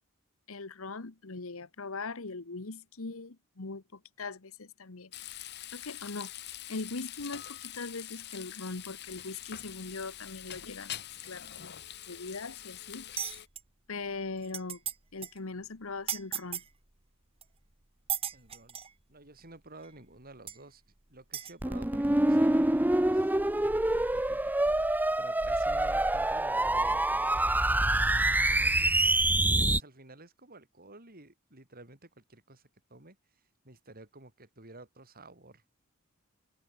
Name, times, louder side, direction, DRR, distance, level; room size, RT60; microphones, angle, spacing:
voice 1, 0.5-5.1 5.7-6.3 6.7-11.7 12.1-13.1 13.9-14.8 15.1-16.6, left 3 dB, 65° left, 1.3 m, -40 dB
Frying (food), 5.1-13.5, left 12 dB, 50° left, 1.5 m, -44 dB
sound 1, 13.2-13.6 14.1-14.2 14.4-14.9 15.2-15.4 16.1-16.7 17.4-17.5 18.1-18.9 19.8-19.9 20.5-20.6 21.3-21.5, right 9 dB, 25° right, 1.5 m, -35 dB
voice 2, 18.3-18.8 19.1-20.8 21.1-23.3 23.6-23.7 24.0-27.9 28.5-29.2 29.6-33.2 33.6-35.7, right 2 dB, 45° right, 6.1 m, -52 dB
sound 2, 21.6-29.8, right 1 dB, 10° right, 0.7 m, -26 dB
head